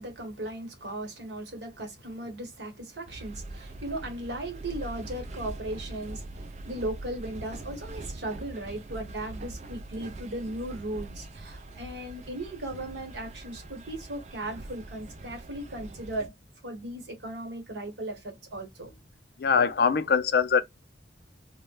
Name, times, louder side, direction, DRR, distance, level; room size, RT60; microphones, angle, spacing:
voice 1, 0.0-16.3 16.6-18.9, right 1 dB, 75° right, 1.1 m, -37 dB
sound 1, 3.1-16.3, right 2 dB, 40° right, 0.3 m, -42 dB
voice 2, 19.4-20.6, left 6 dB, 60° left, 0.3 m, -22 dB
2.1 x 2.1 x 2.9 m
head